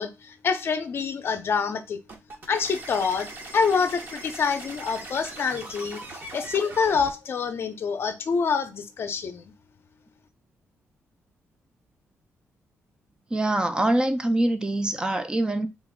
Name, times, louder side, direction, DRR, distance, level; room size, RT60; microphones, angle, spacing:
voice 1, 0.0-2.0 2.5-6.0 6.3-9.4, left 5 dB, 50° left, 0.5 m, -26 dB
sound 1, 2.1-7.1, right 2 dB, 45° right, 0.8 m, -40 dB
voice 2, 13.3-15.7, right 1 dB, 15° right, 0.4 m, -24 dB
3.8 x 2.0 x 3.5 m
cardioid pair, 105°, 5 cm